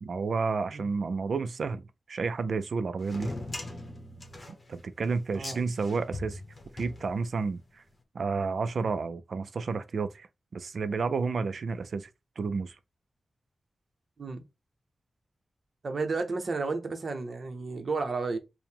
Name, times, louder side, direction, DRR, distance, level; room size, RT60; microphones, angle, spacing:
voice 1, 0.0-1.8 2.1-3.3 4.7-6.4 6.7-7.8 8.1-10.3 10.5-12.1 12.4-12.8, right 4 dB, 65° right, 0.3 m, -31 dB
sound 1, 3.0-7.6, left 2 dB, 30° left, 0.9 m, -41 dB
voice 2, 15.8-18.4, right 3 dB, 50° right, 0.7 m, -32 dB
4.6 x 2.1 x 3.5 m
wide cardioid pair, 150°, 0 cm